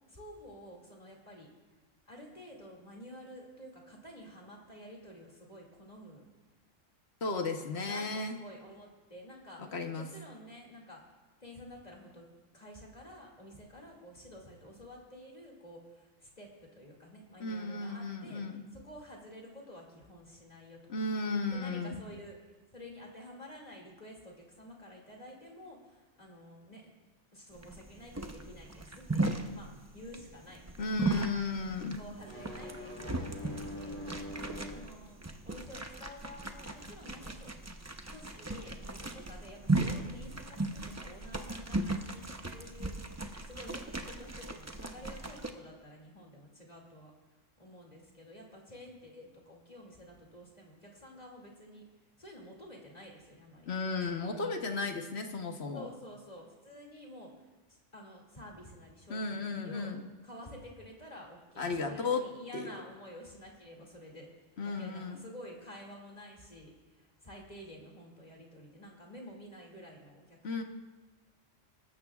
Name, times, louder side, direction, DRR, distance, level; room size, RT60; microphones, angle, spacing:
voice 1, 0.1-1.5 2.1-6.3 7.6-11.0 11.4-12.3 12.5-18.4 18.7-20.8 21.5-26.9 27.3-31.1 31.9-37.7 38.1-47.1 47.6-51.8 52.2-54.5 55.7-59.9 60.2-70.4, equal, 30° left, -1 dB, 2.5 m, -50 dB
voice 2, 7.2-8.3 9.6-10.0 17.4-18.6 20.9-22.0 30.8-32.0 53.7-55.9 59.1-60.1 61.6-62.2 62.5-62.7 64.6-65.2 70.4-70.6, left 3 dB, 55° left, 5 dB, 1.3 m, -34 dB
sound 1, 27.5-45.5, right 2 dB, 20° right, 0.5 m, -37 dB
sound 2, 32.1-34.9, left 1 dB, 10° left, 3.6 m, -43 dB
19.0 x 14.5 x 2.4 m, 1.2 s
omnidirectional pair, 1.3 m